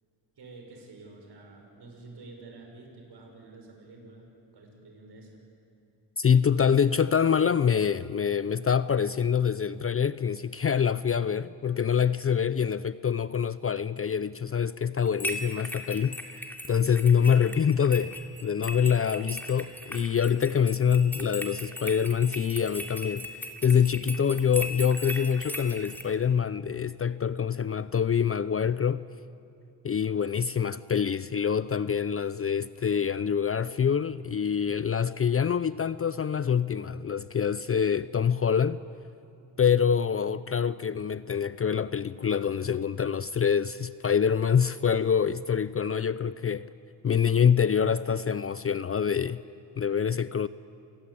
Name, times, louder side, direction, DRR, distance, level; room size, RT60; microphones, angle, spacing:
voice 1, 0.4-5.4, right 3 dB, 60° right, 6.4 m, -49 dB
voice 2, 6.2-23.3 23.6-29.1 29.8-38.8 39.6-46.7 47.0-49.4 49.8-50.5, left 7 dB, 30° left, 0.5 m, -25 dB
sound 1, 15.0-26.0, left 1 dB, 5° left, 2.7 m, -38 dB
27.5 x 19.5 x 8.5 m
cardioid pair, 90°, 45 cm